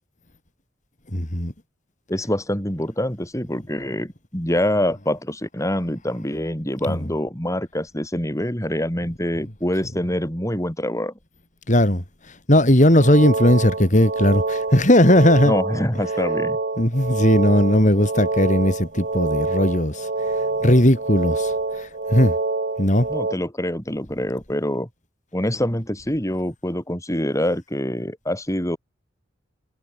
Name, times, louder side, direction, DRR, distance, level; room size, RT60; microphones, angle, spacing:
voice 1, 1.1-1.5 6.9-7.0 11.7-12.0 12.5-15.5 16.8-20.1 20.6-22.3 22.8-23.1, left 1 dB, 40° left, 4.4 m, -17 dB
voice 2, 2.1-11.1 15.4-16.6 23.1-24.9 25.3-28.8, left 1 dB, 15° left, 6.5 m, -25 dB
sound 1, 12.8-23.3, right 3 dB, 50° right, 1.4 m, -26 dB
head